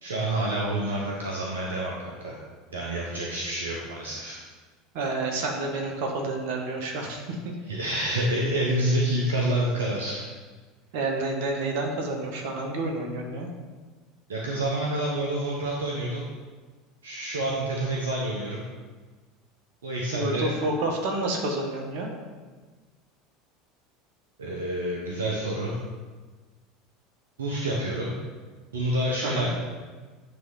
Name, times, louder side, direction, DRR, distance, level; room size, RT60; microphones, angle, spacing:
voice 1, 0.0-2.4 2.7-4.4 7.7-10.3 14.3-16.2 17.0-18.6 19.8-20.6 24.4-25.8 27.4-28.1 28.7-29.5, right 1 dB, 75° right, -2 dB, 1.0 m, -28 dB
voice 2, 4.9-7.5 8.1-8.3 10.9-13.5 20.1-22.1 29.2-29.5, right 2 dB, 60° right, 1 dB, 1.5 m, -29 dB
9.3 x 3.5 x 5.7 m, 1.4 s
figure-of-eight pair, 75°, 0 cm